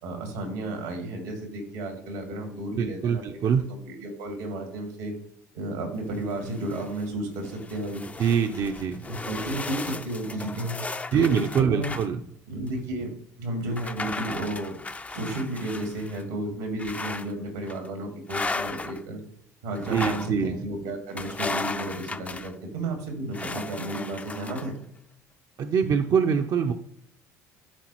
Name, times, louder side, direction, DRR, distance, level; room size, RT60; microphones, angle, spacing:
voice 1, 0.0-3.4 3.7-5.1 5.5-8.0 9.1-10.8 11.1-11.9 12.5-13.1 13.4-14.7 15.1-19.2 19.6-24.8, right 1 dB, 90° right, 2 dB, 2.3 m, -32 dB
voice 2, 2.8-3.7 8.2-9.0 11.1-12.2 19.9-20.6 25.6-26.7, right 7 dB, 50° right, 5 dB, 0.6 m, -24 dB
sound 1, 6.1-7.0 7.4-12.1 12.7-12.8 13.7-16.2 16.8-17.3 17.7-17.9 18.3-19.0 19.8-20.3 21.2-22.5 23.3-24.7, left 3 dB, 15° left, 0.5 m, -35 dB
12.0 x 4.1 x 3.0 m, 0.68 s
hypercardioid pair, 65°, 8 cm